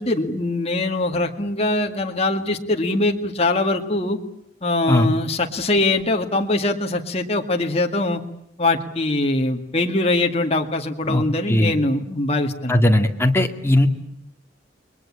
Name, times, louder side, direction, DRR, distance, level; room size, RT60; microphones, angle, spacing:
voice 1, 0.0-4.2 4.6-8.2 8.6-12.8, left 2 dB, 30° left, 3 dB, 2.1 m, -22 dB
voice 2, 11.0-11.7 12.7-13.9, left 1 dB, 15° left, 3 dB, 2.0 m, -18 dB
30.0 x 21.5 x 8.8 m, 0.73 s
head